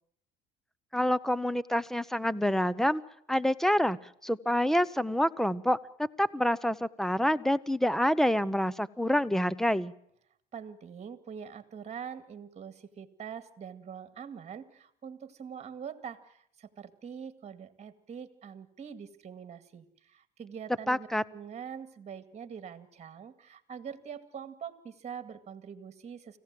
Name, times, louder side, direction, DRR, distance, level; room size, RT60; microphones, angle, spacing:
voice 1, 0.9-3.0 3.3-4.0 4.2-9.9 20.9-21.2, equal, ahead, 20 dB, 0.9 m, -27 dB
voice 2, 10.5-26.4, right 7 dB, 35° right, 12 dB, 2.3 m, -44 dB
25.5 x 16.0 x 7.7 m, 0.70 s
supercardioid pair, 95°, 18 cm